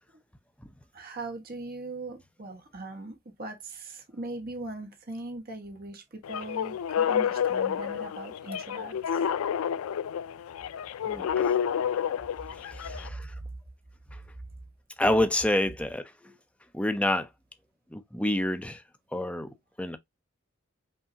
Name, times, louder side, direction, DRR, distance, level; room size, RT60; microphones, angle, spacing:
voice 1, 0.9-9.2 10.7-10.8 11.1-11.4 13.4-13.5, right 2 dB, 45° right, 1.2 m, -40 dB
sound 1, 6.2-13.1, left 8 dB, 80° left, 0.3 m, -29 dB
voice 2, 11.0-11.5 12.5-13.3 14.1-14.2 15.0-16.3 16.7-17.3 17.9-18.8 19.1-20.0, left 1 dB, 5° left, 0.6 m, -29 dB
5.6 x 2.8 x 2.7 m
head